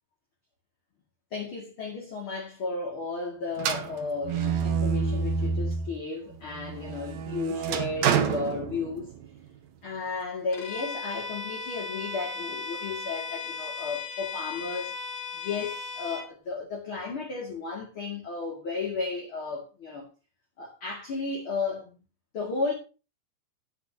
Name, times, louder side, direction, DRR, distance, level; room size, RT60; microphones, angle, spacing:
voice 1, 1.3-9.1 9.8-14.9 15.3-20.1 20.6-22.0 22.3-22.7, left 4 dB, 35° left, 2.7 m, -34 dB
sound 1, 3.6-6.0 6.4-9.3, right 6 dB, 85° right, 1.5 m, -28 dB
Bowed string instrument, 10.5-16.3, left 4 dB, 55° left, 1.7 m, -37 dB
14.5 x 9.9 x 2.9 m
omnidirectional pair, 4.6 m